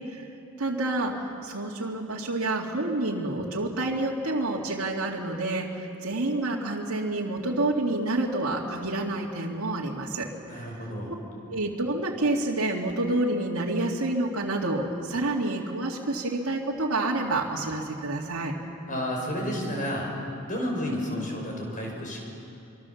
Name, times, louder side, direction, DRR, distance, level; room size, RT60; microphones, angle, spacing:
voice 1, 0.6-10.3 10.5-10.7 11.5-18.5, right 2 dB, 85° right, -3 dB, 2.2 m, -28 dB
voice 2, 10.5-11.1 18.9-20.1 20.5-22.2, equal, 40° left, 0 dB, 6.0 m, -31 dB
25.5 x 24.5 x 7.1 m, 2.7 s
head